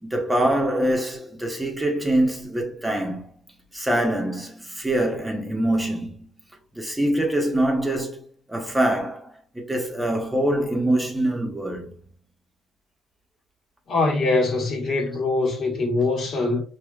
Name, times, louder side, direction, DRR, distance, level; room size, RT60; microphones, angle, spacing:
voice 1, 0.0-3.3 3.7-6.3 6.7-8.2 8.5-11.9, right 1 dB, 10° right, 0.8 m, -24 dB
voice 2, 13.9-16.6, left 3 dB, 60° left, 1.3 m, -23 dB
4.8 x 2.7 x 2.3 m
cardioid pair, 95°, 0 cm